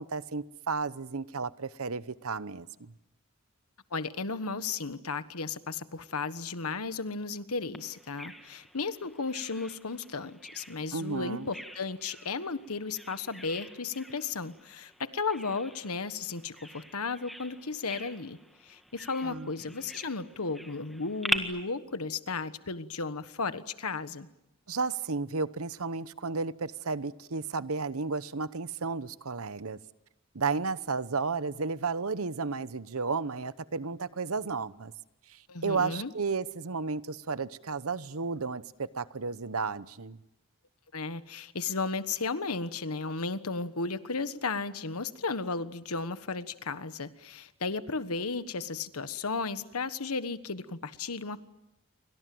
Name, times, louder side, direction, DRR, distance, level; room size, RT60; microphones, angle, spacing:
voice 1, 0.0-2.9 10.9-11.5 19.2-19.5 24.7-29.8 30.3-34.9 35.3-40.2, right 4 dB, 80° right, 15 dB, 1.0 m, -33 dB
voice 2, 3.9-18.4 18.6-24.3 35.5-36.1 40.9-51.4, left 4 dB, 85° left, 12 dB, 1.4 m, -34 dB
Bird vocalization bird call bird song, 7.7-21.4, equal, ahead, 1.7 m, -42 dB
29.5 x 25.0 x 7.8 m, 0.92 s
head